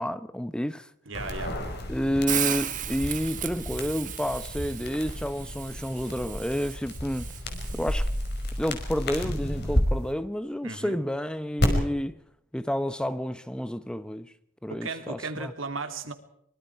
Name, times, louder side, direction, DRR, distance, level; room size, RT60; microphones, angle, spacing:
voice 1, 0.0-0.9 1.9-7.3 7.7-8.1 8.6-12.2 12.5-14.3 14.6-15.5, equal, 5° left, 0.8 m, -30 dB
sound 1, 1.1-9.8 11.6-11.7, left 1 dB, 55° left, 5.4 m, -32 dB
voice 2, 1.1-1.6 10.6-11.0 14.7-16.1, right 3 dB, 75° right, 2.9 m, -35 dB
Hiss, 2.3-8.3, right 11 dB, 40° right, 1.5 m, -35 dB
25.0 x 24.0 x 4.7 m
head